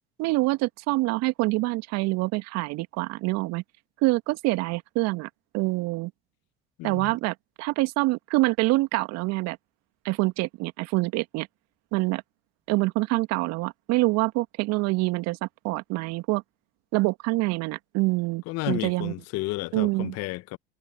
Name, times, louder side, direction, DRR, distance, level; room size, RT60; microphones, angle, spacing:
voice 1, 0.2-3.6 4.0-5.3 5.5-6.1 6.8-9.6 10.0-11.5 11.9-12.2 12.7-16.4 16.9-19.1 19.7-20.1, right 22 dB, 60° right, 2.2 m, -26 dB
voice 2, 6.8-7.2 18.4-20.6, left 20 dB, 60° left, 1.5 m, -32 dB
hypercardioid pair, 65°, 29 cm